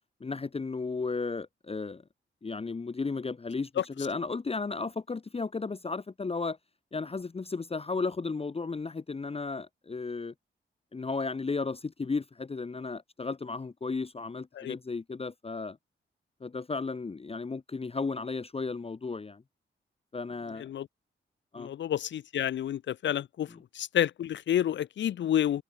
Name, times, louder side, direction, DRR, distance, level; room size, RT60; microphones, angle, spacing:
voice 1, 0.2-2.0 2.4-6.6 6.9-10.3 10.9-15.8 16.4-19.4 20.1-20.7 21.5-21.7 23.5-23.6, left 4 dB, 30° left, 0.8 m, -34 dB
voice 2, 21.6-23.5 23.8-25.6, left 10 dB, 60° left, 0.5 m, -29 dB
cardioid pair, 60°, 21 cm